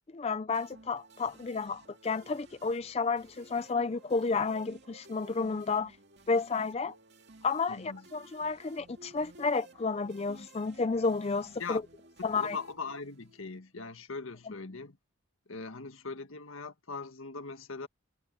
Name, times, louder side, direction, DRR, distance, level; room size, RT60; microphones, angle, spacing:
voice 1, 0.1-6.0 6.3-6.9 7.4-11.8 12.2-12.6, left 4 dB, 30° left, 0.4 m, -31 dB
sound 1, 0.5-13.6, right 2 dB, 55° right, 2.5 m, -56 dB
voice 2, 7.7-8.0 11.6-11.8 12.4-15.0 15.5-17.9, left 4 dB, 75° left, 1.7 m, -40 dB
head